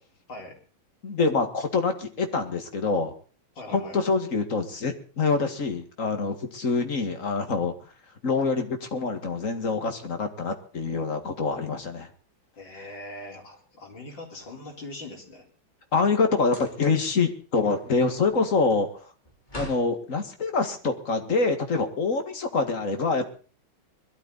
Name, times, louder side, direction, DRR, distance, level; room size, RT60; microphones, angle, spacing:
voice 1, 1.0-3.1 3.7-7.7 8.2-12.1 15.9-18.9 19.6-23.3, left 4 dB, 40° left, 6 dB, 2.3 m, -25 dB
voice 2, 3.5-4.0 12.6-15.5, left 2 dB, 60° left, 0 dB, 4.9 m, -41 dB
sound 1, 14.0-15.2 16.4-17.0 17.4-19.9, equal, 20° left, 4.1 m, -44 dB
21.5 x 12.5 x 4.1 m, 0.38 s
omnidirectional pair, 2.3 m